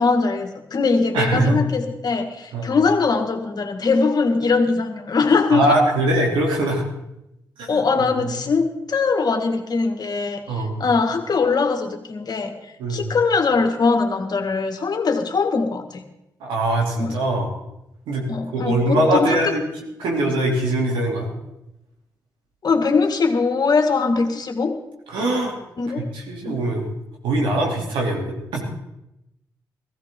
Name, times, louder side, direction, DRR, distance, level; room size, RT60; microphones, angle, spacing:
voice 1, 0.0-5.8 7.7-12.5 12.9-16.0 17.0-17.2 18.3-19.6 22.6-24.7 25.8-26.1 26.4-26.6, left 4 dB, 55° left, 5 dB, 1.8 m, -21 dB
voice 2, 1.1-1.6 2.5-2.7 5.5-6.9 7.6-7.8 8.2-8.4 10.5-10.8 12.8-13.1 16.4-17.5 18.1-18.2 18.5-19.6 20.0-21.3 25.1-25.5 26.1-26.9 27.2-28.6, right 1 dB, 85° right, -1 dB, 3.1 m, -22 dB
15.5 x 15.5 x 3.8 m, 0.88 s
supercardioid pair, 50°, 8 cm